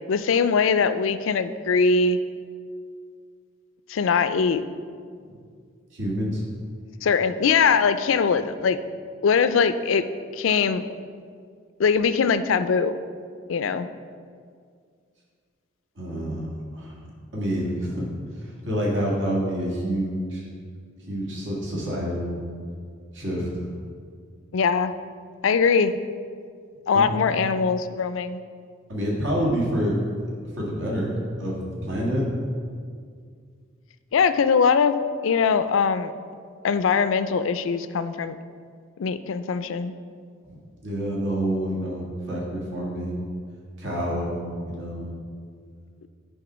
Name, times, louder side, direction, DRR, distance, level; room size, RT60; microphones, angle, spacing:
voice 1, 0.1-2.2 3.9-4.6 7.0-8.8 9.2-10.1 10.4-10.8 11.8-12.9 13.5-13.9 24.5-24.9 25.4-26.0 26.9-28.4 34.1-34.9 35.2-36.1 36.6-38.4 39.0-39.9, left 5 dB, 80° left, 12 dB, 0.4 m, -21 dB
voice 2, 5.9-6.4 16.0-17.0 17.3-20.4 21.1-22.4 23.1-23.5 26.9-27.1 28.9-30.0 30.5-31.1 31.4-32.2 40.8-43.2 43.8-45.1, equal, 70° right, -4 dB, 1.8 m, -27 dB
9.9 x 3.7 x 6.1 m, 2.1 s
head